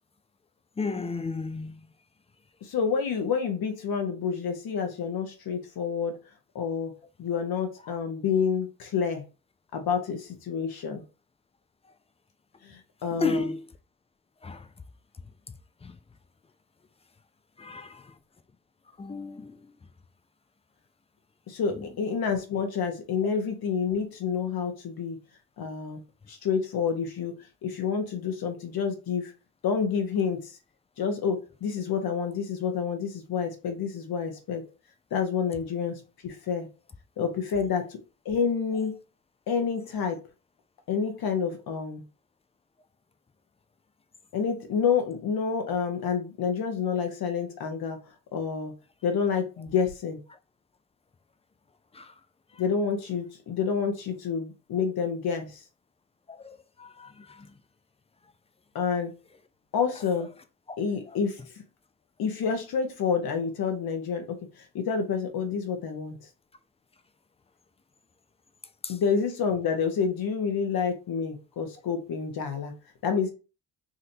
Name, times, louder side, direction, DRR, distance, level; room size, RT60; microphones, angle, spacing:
voice 1, 0.8-1.8 13.1-13.6 14.4-14.7 15.8-15.9 17.6-18.1 19.0-19.7 51.9-52.1 56.3-57.5 68.8-69.0, left 3 dB, 15° left, 0.5 m, -33 dB
voice 2, 2.6-6.2 6.5-6.9 7.2-9.2 9.7-11.0 12.6-13.5 21.5-25.2 25.6-26.0 26.3-27.3 27.6-29.3 29.6-30.5 31.0-34.6 35.1-36.7 37.2-37.8 38.2-39.0 39.5-40.2 40.9-42.0 44.3-48.0 48.3-48.7 49.0-50.2 52.6-55.6 58.7-59.1 59.7-60.3 60.8-61.5 62.2-64.4 64.7-66.2 68.9-72.7 73.0-73.3, left 6 dB, 55° left, 1.2 m, -28 dB
3.9 x 2.6 x 2.7 m
hypercardioid pair, 55°, 45 cm